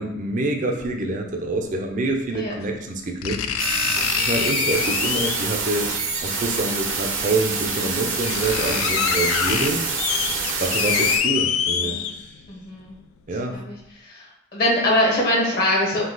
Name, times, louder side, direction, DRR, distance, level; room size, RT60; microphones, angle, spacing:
voice 1, 0.0-3.4 4.2-5.9 6.2-9.8 10.6-12.0 13.3-13.6, right 2 dB, 40° right, 3 dB, 0.5 m, -26 dB
sound 1, 0.8-0.9 2.3-2.4 3.2-5.6 6.9-7.0 7.7-7.8 8.0-12.5 12.9-13.0, left 8 dB, 85° left, 0.3 m, -25 dB
sound 2, 3.6-11.2, right 4 dB, 70° right, 0.8 m, -26 dB
voice 2, 12.5-13.0 13.5-13.7 14.5-16.1, left 1 dB, 50° left, -3 dB, 1.1 m, -22 dB
3.9 x 2.7 x 3.8 m, 0.84 s
head